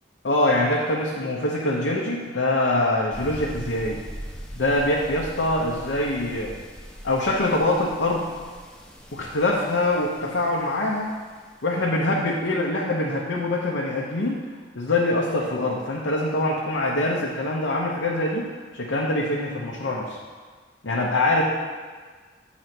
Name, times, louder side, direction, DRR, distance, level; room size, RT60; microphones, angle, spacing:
voice 1, 0.2-4.0 4.6-6.6 7.0-8.3 9.1-11.1 11.6-14.4 14.7-18.5 18.7-20.2 20.8-21.4, left 1 dB, 90° left, -4 dB, 0.9 m, -24 dB
sound 1, 3.1-11.5, equal, 5° left, 1.0 m, -41 dB
7.8 x 4.2 x 5.9 m, 1.5 s
head